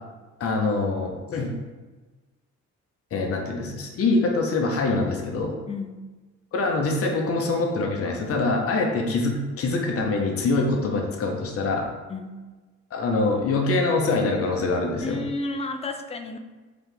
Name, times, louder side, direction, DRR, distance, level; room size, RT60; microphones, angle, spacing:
voice 1, 0.4-1.5 3.1-5.6 6.5-11.9 12.9-15.2, left 3 dB, 50° left, 1 dB, 0.8 m, -24 dB
voice 2, 5.7-6.0 12.1-12.4 15.0-16.4, left 3 dB, 20° left, 7 dB, 0.4 m, -32 dB
3.8 x 2.9 x 3.3 m, 1.2 s
cardioid pair, 90°, 30 cm